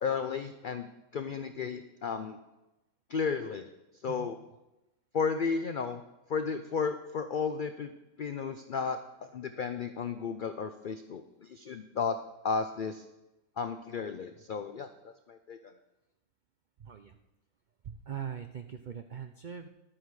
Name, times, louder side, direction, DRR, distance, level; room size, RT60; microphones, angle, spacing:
voice 1, 0.0-2.4 3.1-3.7 4.0-4.4 5.1-6.0 6.3-7.9 8.2-12.2 12.4-13.0 13.6-15.7, left 5 dB, 80° left, 9 dB, 0.4 m, -33 dB
voice 2, 16.8-17.2 17.8-19.7, right 8 dB, 75° right, 7 dB, 0.4 m, -41 dB
11.5 x 8.8 x 4.8 m, 0.98 s
omnidirectional pair, 1.6 m